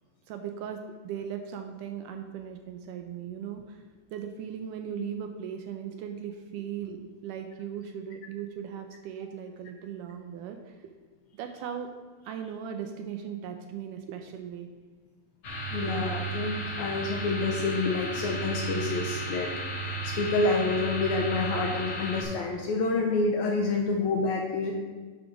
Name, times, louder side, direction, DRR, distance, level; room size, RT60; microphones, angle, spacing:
voice 1, 0.3-3.8 4.1-10.9 11.3-11.9 12.2-14.7 15.9-16.0, right 8 dB, 80° right, 5 dB, 2.0 m, -38 dB
sound 1, 15.4-22.2, right 2 dB, 55° left, 1.2 m, -34 dB
voice 2, 15.7-24.7, left 3 dB, 75° left, 1 dB, 1.8 m, -28 dB
10.5 x 3.8 x 5.9 m, 1.4 s
omnidirectional pair, 4.0 m